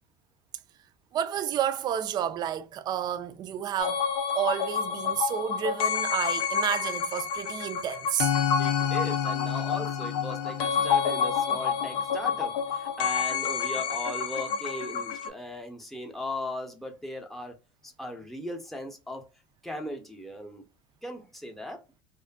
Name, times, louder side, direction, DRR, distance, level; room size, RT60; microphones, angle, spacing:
voice 1, 1.1-4.0 4.3-8.3, right 9 dB, 40° right, 0.3 m, -30 dB
sound 1, 3.8-15.3, left 7 dB, 75° left, 0.5 m, -28 dB
voice 2, 8.6-17.5 17.8-19.2 19.6-20.6 21.0-21.8, left 1 dB, ahead, 0.6 m, -38 dB
2.5 x 2.4 x 2.3 m
supercardioid pair, 105°, 11 cm